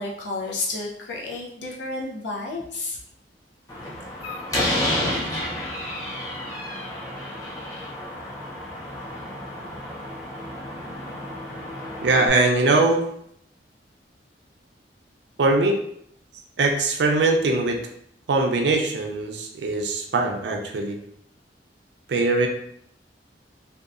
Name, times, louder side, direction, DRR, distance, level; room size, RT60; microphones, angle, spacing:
voice 1, 0.0-3.0, left 2 dB, 90° left, -3 dB, 0.7 m, -31 dB
Slam, 3.7-12.3, left 1 dB, 20° left, 0.7 m, -31 dB
voice 2, 12.0-13.0 15.4-15.8 16.6-17.8 18.3-21.0 22.1-22.5, right 2 dB, 75° right, 3 dB, 0.4 m, -21 dB
2.7 x 2.3 x 2.4 m, 0.70 s
head